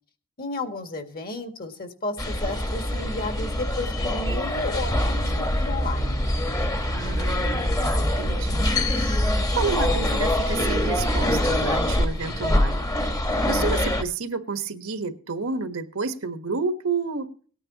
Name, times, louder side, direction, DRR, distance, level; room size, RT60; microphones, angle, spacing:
voice 1, 0.4-6.3, left 2 dB, 45° left, 6 dB, 2.1 m, -33 dB
sound 1, 2.2-14.0, left 1 dB, 20° left, 1.3 m, -24 dB
voice 2, 6.9-12.9 13.4-17.3, right 4 dB, 80° right, 8 dB, 1.5 m, -30 dB
19.0 x 9.9 x 3.0 m, 0.42 s
head